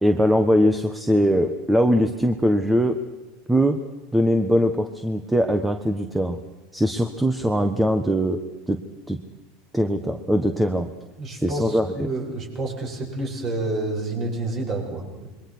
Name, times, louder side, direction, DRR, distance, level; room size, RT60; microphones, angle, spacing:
voice 1, 0.0-3.0 3.5-3.8 4.1-6.4 6.7-8.4 8.7-8.8 9.1-9.2 9.7-10.9 11.3-12.1, equal, 5° right, 6 dB, 1.3 m, -21 dB
voice 2, 11.2-15.3, right 2 dB, 35° right, 1 dB, 7.7 m, -29 dB
27.5 x 23.0 x 6.2 m, 1.2 s
supercardioid pair, 150°, 0 cm